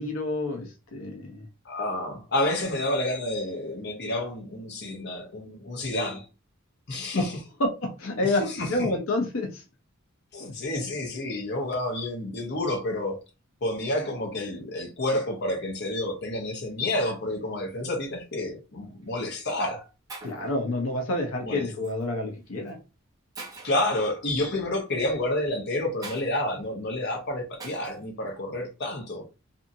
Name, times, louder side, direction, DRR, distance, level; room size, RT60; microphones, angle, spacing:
voice 1, 0.0-1.4 7.1-7.3 7.6-8.4 8.7-9.6 20.2-22.8, left 2 dB, 80° left, 0.7 m, -28 dB
voice 2, 1.6-6.2 6.9-7.3 8.4-8.7 10.3-13.2 13.6-19.9 21.4-21.7 23.6-29.2, left 1 dB, 55° left, 0.9 m, -29 dB
Shatter, 18.9-19.1 19.8-19.9 20.1-20.5 21.8-22.0 22.7-22.8 23.4-23.9 26.0-26.3 27.6-28.0, right 3 dB, 15° right, 0.6 m, -42 dB
2.7 x 2.6 x 2.6 m
head